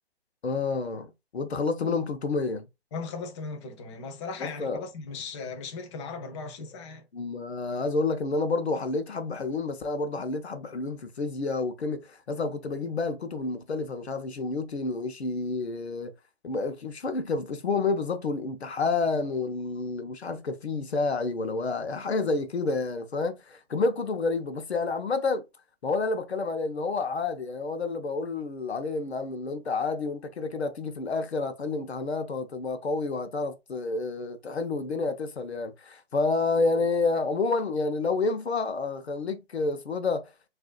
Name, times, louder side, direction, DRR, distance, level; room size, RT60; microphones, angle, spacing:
voice 1, 0.4-2.7 4.4-4.8 7.1-16.1 16.4-25.4 25.8-40.3, left 3 dB, 85° left, 0.9 m, -29 dB
voice 2, 2.9-7.0, left 4 dB, 30° left, 0.8 m, -37 dB
6.1 x 2.7 x 2.3 m
hypercardioid pair, 140°, 31 cm